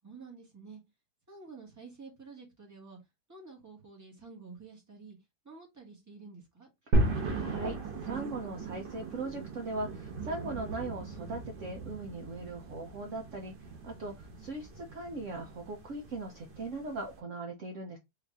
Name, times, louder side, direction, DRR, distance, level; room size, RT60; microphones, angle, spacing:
voice 1, 0.0-0.8 1.3-3.0 3.3-5.2 5.4-6.7, right 4 dB, 10° right, 1.2 m, -50 dB
sound 1, 6.9-17.2, right 1 dB, 80° right, 1.7 m, -36 dB
voice 2, 7.0-18.0, right 2 dB, 60° right, 0.9 m, -39 dB
4.0 x 2.6 x 3.5 m
omnidirectional pair, 1.8 m